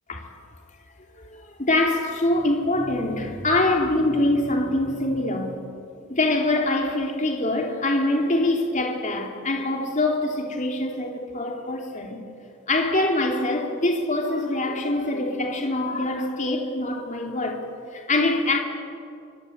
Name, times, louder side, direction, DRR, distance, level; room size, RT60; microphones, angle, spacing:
voice 1, 1.2-5.6 6.1-12.2 12.7-17.6 17.9-18.6, left 2 dB, 35° left, 3.2 m, -24 dB
26.5 x 25.5 x 8.3 m
head